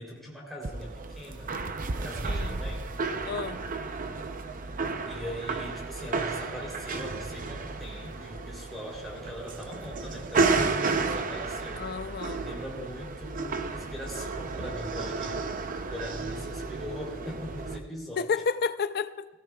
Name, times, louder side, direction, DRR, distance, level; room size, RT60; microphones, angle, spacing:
voice 1, 0.0-1.6 1.9-3.0 5.1-11.8 12.4-18.2, equal, ahead, -5 dB, 3.3 m, -41 dB
sound 1, 0.6-17.8, right 3 dB, 40° right, 0.7 m, -32 dB
voice 2, 2.2-2.6 3.3-3.6 11.8-12.5 18.2-19.3, left 5 dB, 50° left, 12 dB, 0.5 m, -31 dB
19.5 x 16.5 x 2.3 m, 1.3 s
head